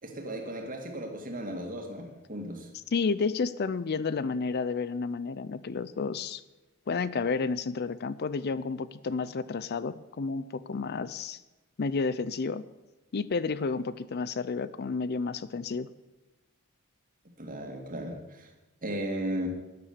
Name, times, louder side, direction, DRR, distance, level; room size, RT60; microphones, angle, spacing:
voice 1, 0.0-2.7 17.4-18.5 18.8-19.5, right 1 dB, 40° right, 3 dB, 2.3 m, -36 dB
voice 2, 2.9-6.4 6.9-11.4 11.8-12.6 13.1-15.9, left 4 dB, 45° left, 16 dB, 0.4 m, -31 dB
13.0 x 9.9 x 6.7 m, 1.1 s
head